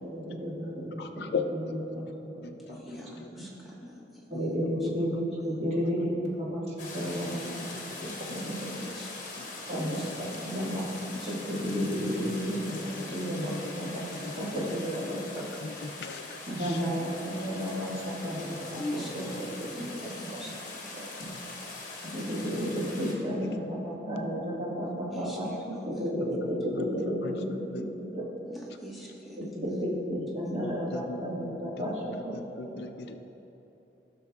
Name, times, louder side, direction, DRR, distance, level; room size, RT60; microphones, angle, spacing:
voice 1, 0.1-1.3 1.9-2.4 4.3-7.6 8.0-8.7 9.7-10.8 11.3-14.0 14.4-15.5 16.5-19.2 19.6-20.1 20.9-21.3 22.1-28.2 29.5-32.2, equal, 35° right, -6 dB, 1.6 m, -32 dB
voice 2, 1.0-2.0 2.4-3.3 4.3-4.9 7.3-8.6 9.4-9.5 12.8-14.5 15.1-15.2 15.6-17.0 21.3-21.4 23.4-23.6 24.9-25.5 26.2-27.8 30.6-31.9 32.3-33.2, left 3 dB, 65° left, 7 dB, 0.4 m, -40 dB
voice 3, 2.7-4.3 4.8-4.9 5.4-5.5 8.8-10.8 11.1-11.3 18.8-20.8 25.1-25.8 28.4-29.4, left 1 dB, ahead, -6 dB, 1.3 m, -43 dB
sound 1, 6.8-23.1, left 3 dB, 45° left, 1.4 m, -42 dB
15.0 x 6.3 x 2.3 m, 3.0 s
head